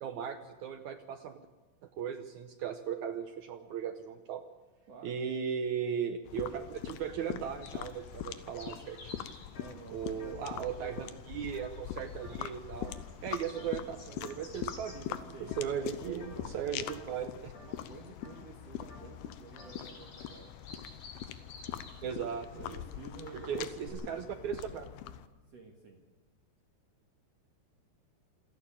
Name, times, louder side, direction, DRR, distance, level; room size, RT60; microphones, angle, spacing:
voice 1, 0.0-1.5 2.0-4.4 5.0-9.3 9.9-12.9 13.2-15.2 15.6-17.5 22.0-22.8 23.3-24.9, right 8 dB, 85° right, 7 dB, 1.6 m, -37 dB
voice 2, 4.9-5.2 9.5-11.0 15.3-16.7 17.6-20.5 22.5-24.1 25.5-26.0, right 3 dB, 50° right, 1 dB, 2.4 m, -50 dB
sound 1, 6.3-25.3, left 11 dB, 90° left, 2.8 m, -43 dB
Bird vocalization bird call bird song, 6.9-23.9, left 3 dB, 70° left, 6.3 m, -56 dB
sound 2, 9.5-9.7 10.1-12.6 12.9-13.2 13.5-13.9 14.2-15.0 15.5-15.8 16.2-19.8, left 2 dB, 45° left, 3.9 m, -56 dB
27.5 x 11.5 x 8.9 m, 1.3 s
omnidirectional pair, 4.5 m